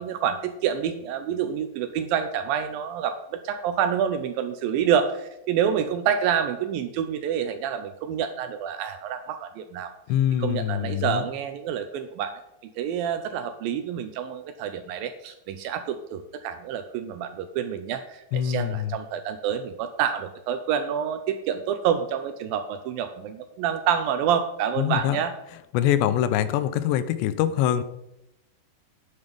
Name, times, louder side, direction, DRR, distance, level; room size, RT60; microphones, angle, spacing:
voice 1, 0.0-9.9 10.4-12.3 12.8-25.3, right 8 dB, 85° right, 8 dB, 2.0 m, -27 dB
voice 2, 10.1-11.2 18.3-19.0 24.8-25.2 25.7-27.8, left 11 dB, 85° left, 14 dB, 2.9 m, -24 dB
9.6 x 8.9 x 5.3 m, 0.84 s
omnidirectional pair, 4.9 m